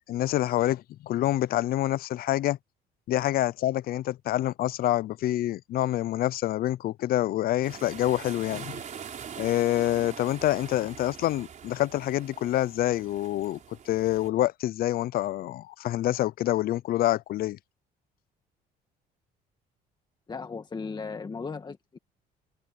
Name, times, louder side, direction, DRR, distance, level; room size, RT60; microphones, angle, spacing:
voice 1, 0.1-2.6 3.1-8.8 9.4-13.6 13.9-17.6, left 14 dB, 60° left, 0.5 m, -27 dB
sound 1, 7.6-14.3, right 8 dB, 45° right, 4.2 m, -43 dB
voice 2, 20.3-22.0, left 4 dB, 25° left, 1.7 m, -36 dB
cardioid pair, 110°, 17 cm